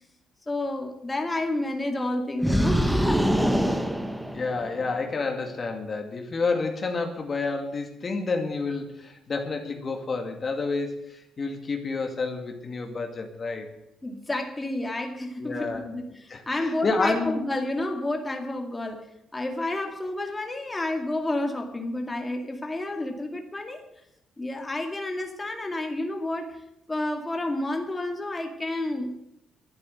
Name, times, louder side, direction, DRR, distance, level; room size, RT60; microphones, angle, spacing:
voice 1, 0.5-3.3 14.0-19.0 19.3-23.8 24.4-29.2, left 1 dB, 15° left, 3 dB, 2.2 m, -30 dB
sound 1, 2.4-4.9, equal, 5° right, 1.3 m, -24 dB
voice 2, 4.2-13.7 15.4-15.9 16.3-17.4, left 3 dB, 40° left, 4 dB, 2.2 m, -29 dB
12.0 x 9.7 x 9.2 m, 0.81 s
cardioid pair, 90°, 0 cm